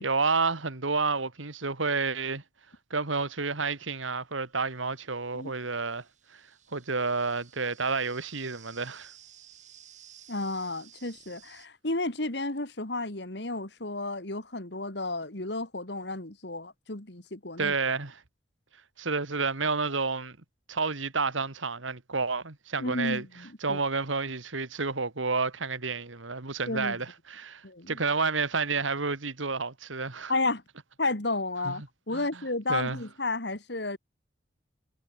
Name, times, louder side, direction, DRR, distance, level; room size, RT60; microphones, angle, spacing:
voice 1, 0.0-2.4 2.9-6.0 6.3-6.4 6.7-9.1 17.6-18.2 19.0-20.4 20.7-23.3 23.6-30.3 31.6-31.8 32.1-32.2 32.7-33.0, right 4 dB, 85° right, 2.1 m, -30 dB
sound 1, 4.2-11.7, right 10 dB, 40° right, 7.1 m, -55 dB
voice 2, 10.3-17.7 22.8-23.8 26.7-27.0 27.6-28.0 30.3-30.6 31.0-34.0, left 2 dB, 60° left, 2.4 m, -32 dB
head